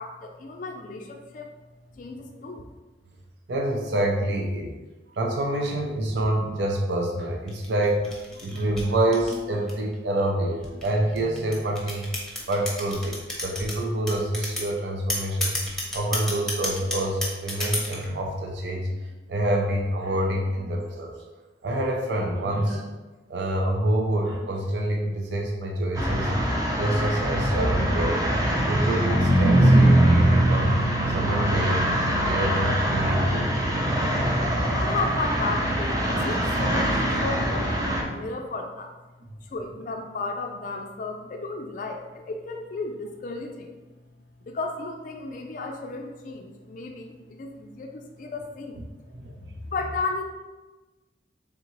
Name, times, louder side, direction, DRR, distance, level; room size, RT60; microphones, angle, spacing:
voice 1, 0.0-1.5 1.9-2.7 34.7-38.9 39.4-43.7 44.5-48.8 49.6-50.2, left 3 dB, 45° left, 3 dB, 0.4 m, -33 dB
voice 2, 3.5-4.7 5.2-12.0 12.5-15.5 15.9-21.1 21.6-22.9 23.3-26.3 26.8-28.3 28.6-30.8 31.1-31.8 32.2-33.6 34.2-34.8 49.1-49.5, right 1 dB, 70° right, 0 dB, 0.5 m, -27 dB
sound 1, 7.5-9.9 10.6-13.8 14.1-14.7 15.1-18.1, left 1 dB, ahead, 0.9 m, -31 dB
sound 2, 26.0-38.0, right 1 dB, 20° right, 0.5 m, -22 dB
3.8 x 3.5 x 3.0 m, 1.2 s
head